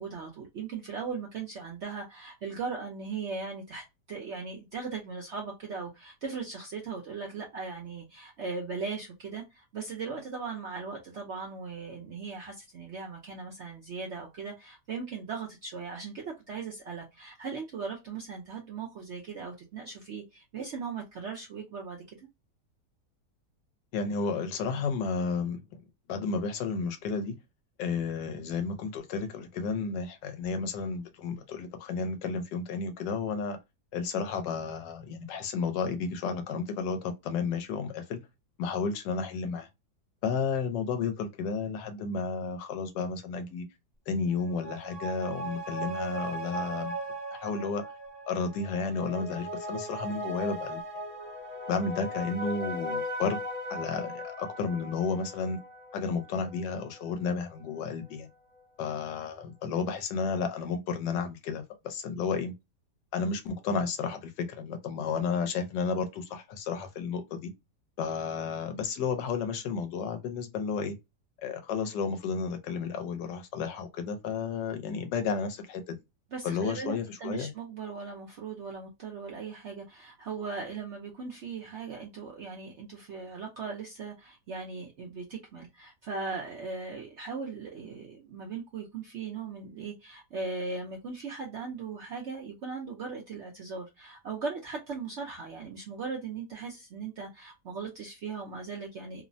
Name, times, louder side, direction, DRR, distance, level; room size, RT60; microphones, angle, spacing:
voice 1, 0.0-22.2 76.3-99.2, right 5 dB, 70° right, 0.6 m, -38 dB
voice 2, 23.9-25.8 26.1-27.3 27.8-33.6 33.9-38.2 38.6-39.7 40.2-43.7 44.1-46.9 47.3-47.8 48.3-50.8 51.7-53.4 53.7-55.6 55.9-58.3 58.8-62.5 63.1-67.5 68.0-71.0 71.4-76.0 76.4-77.5, left 5 dB, 85° left, 1.3 m, -32 dB
sound 1, 44.3-57.2 57.5-57.6, equal, 35° right, 0.8 m, -38 dB
3.1 x 2.0 x 2.5 m
omnidirectional pair, 1.8 m